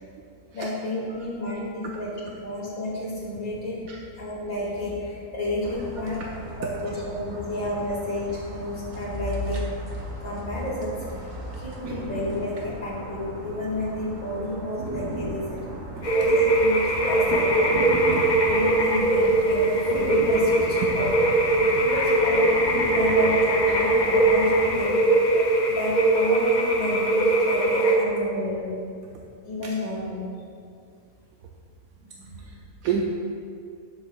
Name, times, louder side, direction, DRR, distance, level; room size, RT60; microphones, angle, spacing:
voice 1, 0.5-2.1 2.4-3.8 4.2-6.2 6.6-9.9 10.2-11.2 11.6-15.5 16.2-17.8 18.4-21.1 21.6-22.4 22.9-25.0 25.7-28.8 29.4-30.2 32.1-32.4, left 1 dB, 75° left, -6 dB, 2.7 m, -31 dB
sound 1, 5.6-24.8, right 2 dB, 35° right, 0.9 m, -37 dB
sound 2, 16.0-28.0, right 2 dB, 45° left, 0.6 m, -21 dB
voice 2, 32.4-33.1, right 7 dB, 80° right, 0 dB, 1.0 m, -32 dB
10.5 x 7.1 x 2.4 m, 2.3 s
omnidirectional pair, 1.5 m